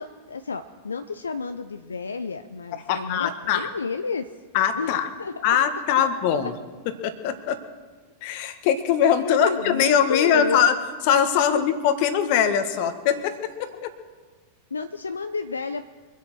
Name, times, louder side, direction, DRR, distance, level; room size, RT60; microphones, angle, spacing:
voice 1, 0.0-4.3 4.7-4.9 5.2-5.6 9.2-10.7 11.5-11.6 14.7-15.8, left 4 dB, 75° left, 9 dB, 0.6 m, -31 dB
voice 2, 2.9-3.7 4.5-5.1 5.4-6.5 7.0-7.6 8.2-10.7 11.1-13.9, left 8 dB, 45° left, 10 dB, 1.5 m, -22 dB
24.5 x 8.3 x 6.1 m, 1.4 s
figure-of-eight pair, 90°, 0 cm